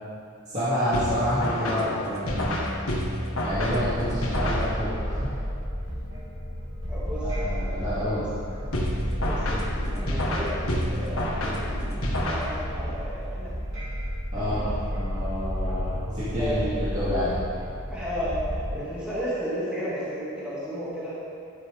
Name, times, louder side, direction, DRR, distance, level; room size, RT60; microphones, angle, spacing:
voice 1, 0.5-2.7 3.4-5.3 7.2-8.3 14.3-17.4, equal, 35° right, -13 dB, 2.7 m, -28 dB
sound 1, 0.9-5.1 8.7-12.9, left 1 dB, 75° left, 1.6 m, -29 dB
sound 2, 3.5-18.7, equal, 60° right, 2.9 m, -31 dB
voice 2, 6.9-7.5 8.1-8.3 9.2-9.4 10.0-10.5 10.8-11.7 12.2-13.5 14.3-14.8 16.2-16.7 17.9-21.2, equal, 5° right, -11 dB, 2.4 m, -33 dB
12.5 x 9.1 x 3.7 m, 2.4 s
head